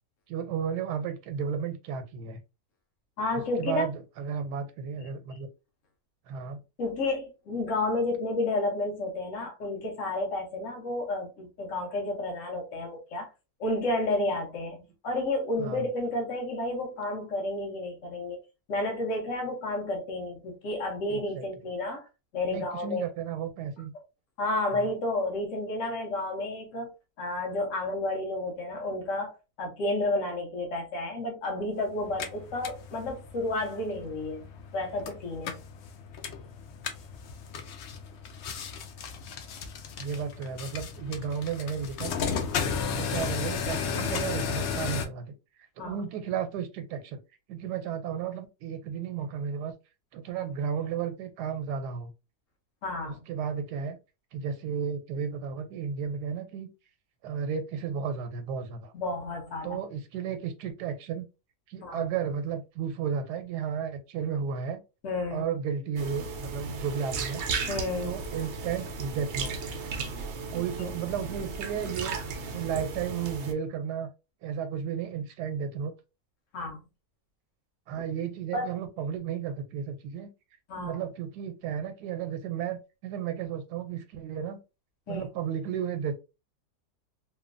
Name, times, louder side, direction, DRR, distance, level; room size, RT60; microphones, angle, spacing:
voice 1, 0.3-2.4 3.3-5.5 6.3-6.6 15.6-15.8 21.1-21.4 22.5-23.9 24.7-24.9 40.0-42.4 43.0-45.3 45.8-47.2 47.5-49.7 50.1-52.1 53.0-54.0 54.3-56.7 57.2-58.9 59.6-61.2 61.7-64.8 65.3-67.4 68.0-69.5 70.5-72.2 72.5-74.1 74.4-75.9 77.9-80.3 80.7-84.6 85.1-86.2, right 7 dB, 90° right, 1.2 m, -33 dB
voice 2, 3.2-3.8 5.3-5.4 6.8-13.3 13.6-18.4 18.7-22.0 22.3-23.0 24.4-26.9 27.2-34.5 34.7-35.6 45.8-46.0 52.8-53.2 58.9-59.8 61.8-62.1 65.0-65.5 67.7-68.2 70.8-70.9 76.5-76.8 78.5-78.7 80.7-80.9 85.1-85.3, left 2 dB, 55° left, 1.1 m, -31 dB
sound 1, 32.0-45.1, left 6 dB, 90° left, 0.5 m, -35 dB
sound 2, 66.0-73.5, right 4 dB, 70° right, 0.6 m, -35 dB
3.0 x 2.2 x 2.4 m
omnidirectional pair, 1.7 m